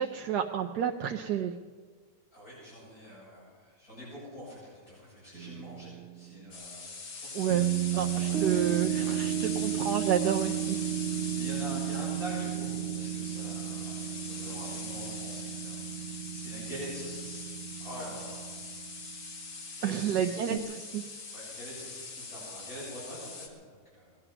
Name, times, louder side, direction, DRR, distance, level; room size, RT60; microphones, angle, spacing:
voice 1, 0.0-1.5 7.3-7.6 8.0-10.8 19.8-21.1, right 9 dB, 75° right, 2 dB, 1.3 m, -30 dB
voice 2, 2.3-8.6 9.0-9.2 11.3-15.8 16.3-17.5 17.8-18.5 19.8-20.6 21.3-24.2, equal, 60° left, -8 dB, 7.6 m, -45 dB
sound 1, 5.3-6.3 7.5-19.2 20.5-20.6, right 12 dB, 50° right, 0.9 m, -33 dB
sound 2, 6.5-23.5, left 4 dB, 90° left, 2.4 m, -42 dB
19.5 x 12.0 x 5.9 m, 1.5 s
omnidirectional pair, 1.8 m